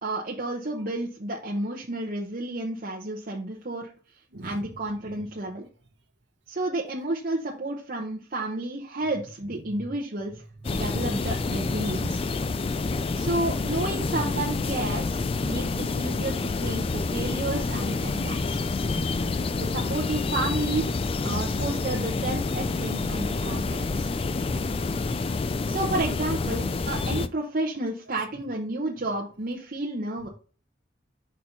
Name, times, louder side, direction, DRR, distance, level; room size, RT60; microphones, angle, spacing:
voice 1, 0.0-3.9 4.4-5.6 6.5-10.3 10.7-12.2 13.1-18.6 19.6-20.9 21.2-24.1 25.7-30.3, right 2 dB, 50° right, 0.9 m, -31 dB
voice 2, 4.3-4.8 5.0-5.2 9.7-9.9 10.9-11.0 17.9-19.7 21.3-21.6, right 1 dB, 75° right, 1.1 m, -42 dB
sound 1, 10.6-27.3, left 3 dB, 30° left, 0.3 m, -28 dB
4.4 x 4.2 x 5.4 m
head